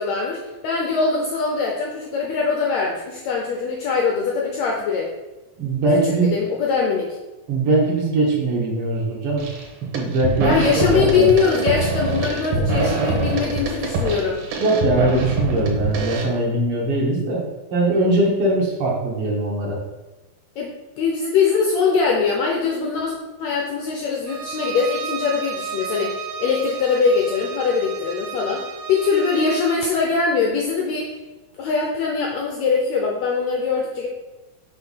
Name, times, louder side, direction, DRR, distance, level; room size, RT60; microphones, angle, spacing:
voice 1, 0.0-5.1 6.0-7.2 10.4-14.4 20.6-31.1 31.6-34.1, left 5 dB, 85° left, 0 dB, 1.5 m, -22 dB
voice 2, 5.6-6.4 7.5-9.4 9.9-11.3 12.6-13.1 14.6-17.4 17.7-19.8, right 2 dB, 55° right, -2 dB, 1.8 m, -21 dB
sound 1, 9.4-9.6 9.9-16.2, right 2 dB, 70° right, 2.3 m, -24 dB
Bowed string instrument, 24.3-29.9, right 5 dB, 85° right, 2.4 m, -33 dB
6.0 x 3.4 x 5.5 m, 1.1 s
omnidirectional pair, 3.9 m